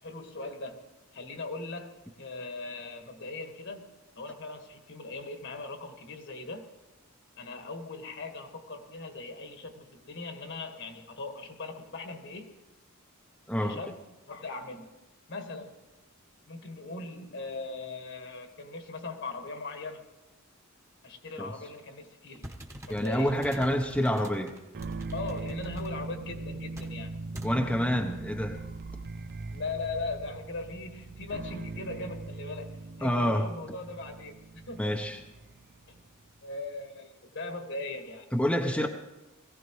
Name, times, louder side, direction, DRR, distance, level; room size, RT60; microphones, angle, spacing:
voice 1, 0.0-6.7 7.4-12.5 13.6-14.9 15.3-15.8 16.5-20.0 21.0-22.6 22.9-23.4 25.1-27.1 29.5-35.0 35.9-36.0 36.4-38.3 38.7-38.9, left 3 dB, 60° left, 5 dB, 1.7 m, -39 dB
voice 2, 13.5-13.8 21.4-21.5 22.9-24.5 27.4-28.6 33.0-33.5 34.8-35.2 38.3-38.9, equal, 5° left, 2 dB, 0.8 m, -27 dB
sound 1, 22.3-25.9 26.7-26.9 27.3-27.6, equal, 15° right, 1.2 m, -45 dB
sound 2, 24.7-36.1, right 3 dB, 45° right, 0.4 m, -40 dB
22.0 x 16.0 x 3.1 m, 1.1 s
head